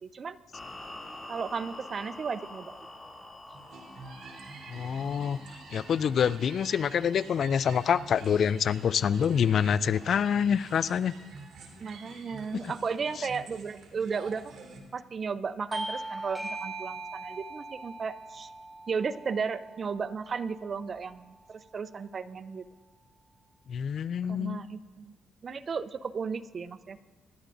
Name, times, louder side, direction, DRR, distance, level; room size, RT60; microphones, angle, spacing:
voice 1, 0.0-0.4 1.3-2.8 11.8-14.5 14.9-18.5 18.9-22.6 24.3-25.2 25.4-27.0, right 5 dB, 45° right, 14 dB, 0.5 m, -34 dB
sound 1, 0.5-7.7, left 2 dB, 20° left, 2.7 m, -47 dB
sound 2, 3.5-14.8, right 3 dB, 70° right, 2.7 m, -47 dB
voice 2, 4.7-5.4 5.7-11.1 13.2-13.3 23.7-24.6, left 7 dB, 60° left, 18 dB, 0.3 m, -26 dB
Bell / Doorbell, 15.7-20.8, right 2 dB, 10° right, 2.0 m, -40 dB
25.5 x 11.0 x 2.6 m, 1.3 s
cardioid pair, 90°, 0 cm